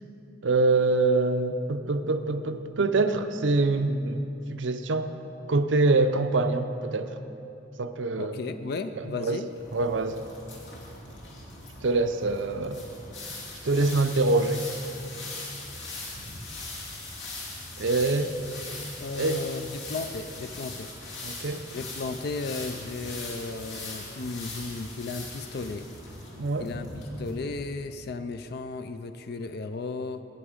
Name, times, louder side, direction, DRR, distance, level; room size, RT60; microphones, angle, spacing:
voice 1, 0.4-4.2 4.5-5.1 5.5-7.2 7.8-8.3 9.0-9.4 9.7-10.2 11.8-12.8 13.6-14.6 17.8-18.3 19.2-19.4 21.2-21.6 26.4-26.7, right 3 dB, 75° right, 9 dB, 0.6 m, -25 dB
voice 2, 8.2-9.5 19.0-20.9 21.7-25.9 26.6-26.9 27.2-30.2, left 3 dB, 55° left, 9 dB, 0.4 m, -35 dB
sound 1, 9.5-27.3, left 2 dB, 80° left, 2.6 m, -40 dB
17.5 x 7.0 x 5.1 m, 2.9 s
head